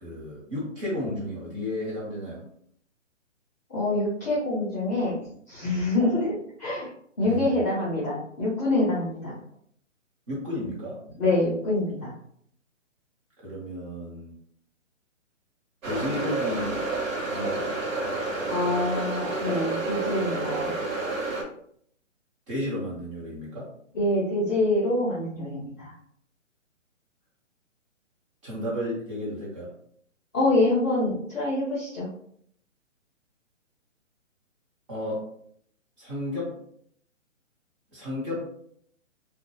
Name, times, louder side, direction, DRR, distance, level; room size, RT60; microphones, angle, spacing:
voice 1, 0.0-2.4 7.2-7.6 10.3-11.0 13.4-14.3 15.8-16.9 17.3-17.7 22.5-23.7 28.4-29.7 34.9-35.3 36.0-36.5 37.9-38.5, left 1 dB, 25° right, -6 dB, 0.9 m, -32 dB
voice 2, 3.7-6.9 7.2-9.4 11.2-12.1 18.5-20.7 23.9-25.9 30.3-32.1, left 2 dB, 15° left, -14 dB, 0.6 m, -26 dB
sound 1, 15.8-21.4, right 2 dB, 80° right, 0.9 m, -29 dB
2.2 x 2.0 x 2.9 m, 0.65 s
hypercardioid pair, 150°, 39 cm